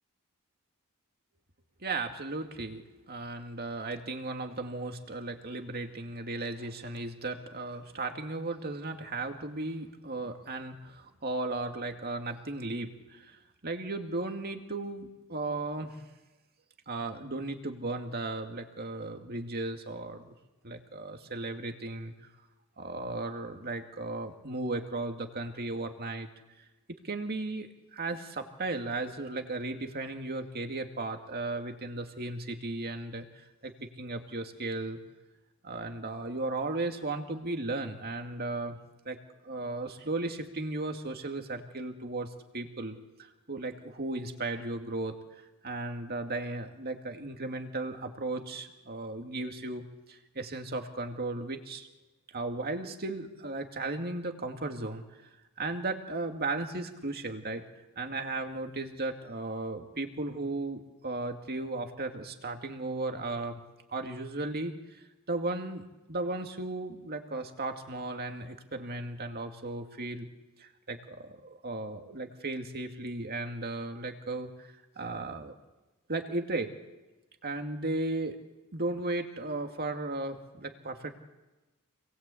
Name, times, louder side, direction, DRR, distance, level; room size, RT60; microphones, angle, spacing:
voice 1, 1.8-16.0 16.9-20.3 20.6-22.1 22.8-26.3 26.9-35.0 35.6-38.8 39.1-39.2 39.4-49.8 50.1-51.9 52.3-55.0 55.6-57.6 58.0-63.6 63.9-65.8 66.1-70.3 70.6-75.6 76.1-76.7 77.4-78.4 78.7-81.1, right 2 dB, 45° right, 5 dB, 2.2 m, -36 dB
27.0 x 20.0 x 8.5 m, 1.1 s
head